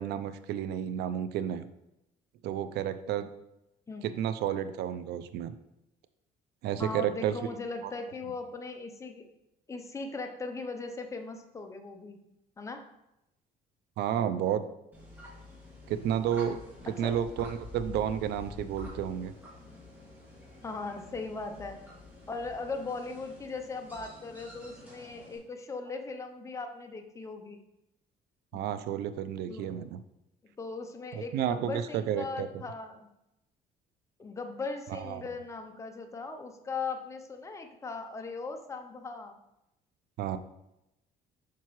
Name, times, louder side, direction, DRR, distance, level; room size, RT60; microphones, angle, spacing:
voice 1, 0.0-1.6 2.4-3.3 4.0-5.5 6.6-7.5 7.8-7.9 14.0-14.7 15.9-19.3 28.5-30.0 31.1-32.5 34.9-35.2 40.2-40.4, right 10 dB, 75° right, 12 dB, 0.5 m, -31 dB
voice 2, 6.8-9.2 9.7-12.2 12.6-12.8 16.9-17.2 20.6-21.8 22.3-27.6 28.5-28.6 29.5-29.7 30.6-33.1 34.2-39.4, left 3 dB, 15° left, 5 dB, 0.6 m, -39 dB
sound 1, 14.9-25.4, left 2 dB, 10° right, 2.1 m, -48 dB
6.0 x 5.6 x 3.1 m, 0.86 s
cardioid pair, 110°, 17 cm